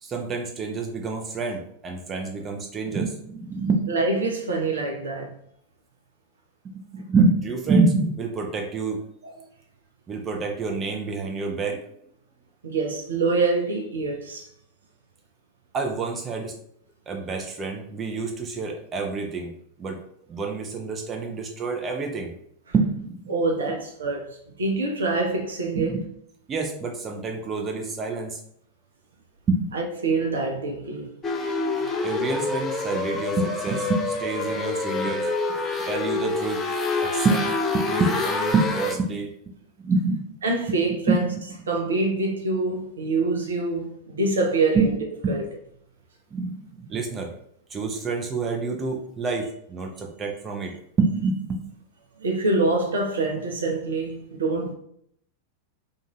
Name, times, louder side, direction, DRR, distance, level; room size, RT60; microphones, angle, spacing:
voice 1, 0.0-3.9 6.7-9.0 10.1-11.8 15.7-16.5 17.1-19.5 19.8-20.0 20.3-22.3 22.7-23.3 25.7-26.0 26.5-28.4 29.5-29.7 32.0-35.3 35.9-36.6 37.0-39.6 39.8-40.3 41.1-41.2 44.7-44.9 45.2-45.3 46.3-47.3 47.7-51.7, right 4 dB, 25° right, 0.6 m, -27 dB
voice 2, 3.9-5.4 9.2-9.3 12.6-14.5 23.3-26.0 29.7-31.1 40.4-41.3 41.7-44.9 45.3-45.4 52.2-54.7, right 3 dB, 70° right, 0.6 m, -25 dB
sound 1, 31.2-39.0, left 3 dB, 20° left, 0.4 m, -27 dB
2.5 x 2.5 x 2.9 m
figure-of-eight pair, 90°, 0 cm